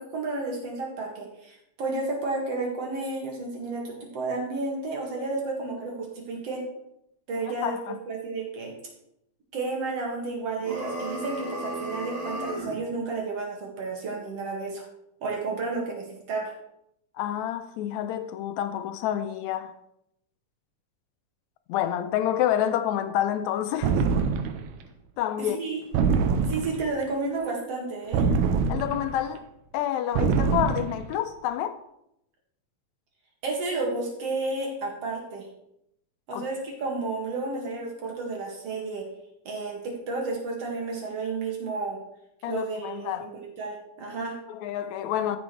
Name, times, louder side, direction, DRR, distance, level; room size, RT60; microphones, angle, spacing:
voice 1, 0.0-6.6 7.3-8.7 9.5-14.8 15.2-16.5 25.4-25.8 26.4-28.2 33.4-35.5 36.3-39.0 39.4-42.0 42.5-44.4, right 3 dB, 60° right, 2.9 m, -32 dB
voice 2, 7.6-8.0 17.2-19.7 21.7-24.0 25.2-25.6 28.7-29.5 29.7-31.8 36.3-36.4 42.4-43.3 44.5-45.4, left 11 dB, 80° left, 1.9 m, -28 dB
sound 1, 10.6-12.8, right 1 dB, 30° right, 0.6 m, -33 dB
sound 2, 23.8-24.7 25.9-26.9 28.1-29.2 30.2-31.0, right 5 dB, 85° right, 2.1 m, -24 dB
15.0 x 6.2 x 3.3 m
omnidirectional pair, 3.3 m